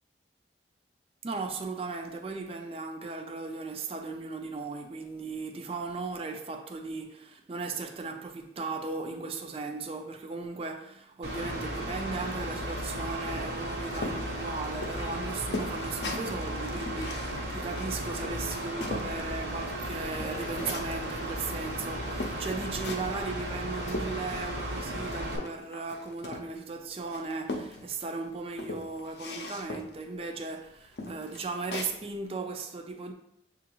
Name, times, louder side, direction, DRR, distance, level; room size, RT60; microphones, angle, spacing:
voice 1, 1.2-33.1, right 3 dB, 30° right, 0.4 m, -37 dB
Mechanical fan, 11.2-25.4, right 1 dB, 65° right, 1.1 m, -35 dB
sound 1, 13.9-19.1 19.6-21.0 21.7-21.8 22.2-23.2 23.6-24.7 25.0-26.7 27.1-28.1 28.5-30.0 30.5-30.6 31.0-32.0, left 2 dB, 65° left, 0.6 m, -39 dB
6.8 x 2.4 x 2.9 m
head